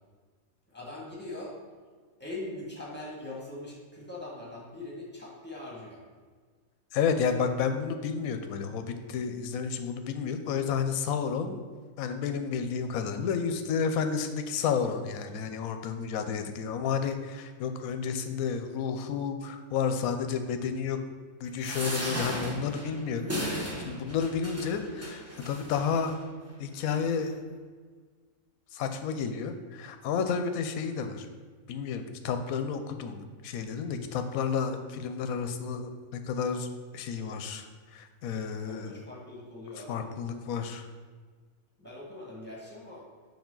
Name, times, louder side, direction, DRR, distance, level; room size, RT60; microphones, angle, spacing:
voice 1, 0.7-1.5 2.2-6.0 38.6-40.3 41.8-43.0, left 2 dB, 5° left, -4 dB, 1.6 m, -42 dB
voice 2, 6.9-11.6 12.0-21.0 21.4-26.2 26.6-27.3 28.7-31.3 31.7-36.7 36.9-39.0 39.8-40.9, left 6 dB, 75° left, 8 dB, 1.1 m, -31 dB
sound 1, 21.6-26.1 26.8-26.9 27.2-27.3, equal, 10° right, 0.9 m, -36 dB
7.1 x 5.5 x 3.8 m, 1.5 s
omnidirectional pair, 1.6 m